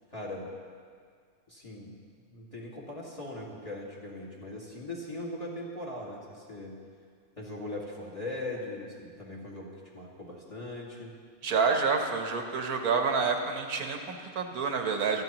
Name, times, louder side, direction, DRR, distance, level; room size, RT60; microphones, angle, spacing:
voice 1, 0.1-0.5 1.5-1.9 2.3-6.8 7.4-11.1, left 1 dB, 25° left, -4 dB, 2.0 m, -40 dB
voice 2, 11.4-15.2, right 5 dB, 80° right, 4 dB, 1.6 m, -28 dB
26.0 x 8.9 x 3.0 m, 2.1 s
omnidirectional pair, 1.5 m